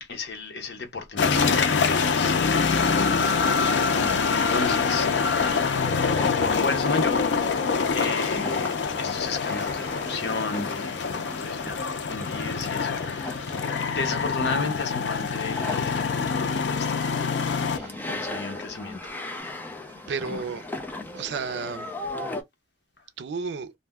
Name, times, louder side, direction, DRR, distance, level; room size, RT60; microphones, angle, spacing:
voice 1, 0.0-2.8 3.1-5.1 6.4-7.7 7.9-13.6 13.9-17.1 17.6-19.2, left 4 dB, 70° left, 0.8 m, -34 dB
sound 1, 1.2-17.8, left 5 dB, 90° left, 0.5 m, -25 dB
sound 2, 3.8-22.4, left 2 dB, 10° left, 0.5 m, -38 dB
sound 3, 5.0-19.4, left 1 dB, 10° right, 1.0 m, -50 dB
voice 2, 19.9-20.7 21.1-21.9 23.2-23.7, right 5 dB, 75° right, 0.4 m, -32 dB
2.6 x 2.1 x 3.4 m
head